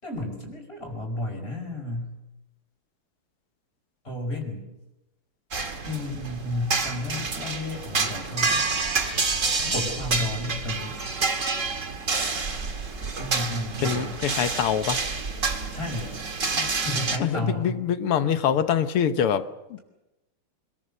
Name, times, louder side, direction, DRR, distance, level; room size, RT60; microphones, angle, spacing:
voice 1, 0.0-2.1 4.0-4.7 5.8-8.6 9.7-11.0 13.2-14.2 15.7-16.1 16.5-17.8, left 1 dB, 25° left, 2 dB, 5.2 m, -32 dB
sound 1, 5.5-17.2, right 4 dB, 35° right, 2.0 m, -28 dB
voice 2, 13.8-15.0 17.2-19.8, left 8 dB, 90° left, 10 dB, 2.1 m, -25 dB
26.5 x 21.5 x 6.7 m, 0.97 s
omnidirectional pair, 2.4 m